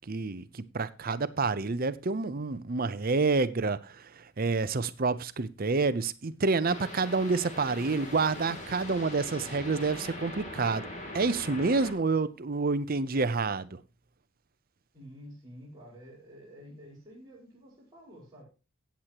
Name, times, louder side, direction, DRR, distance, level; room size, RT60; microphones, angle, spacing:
voice 1, 0.1-10.9 11.1-13.8, right 4 dB, 45° right, 0.7 m, -28 dB
sound 1, 6.6-11.9, left 1 dB, 35° left, 2.9 m, -41 dB
voice 2, 14.9-18.4, equal, 20° right, 5.1 m, -50 dB
16.5 x 8.2 x 3.0 m
head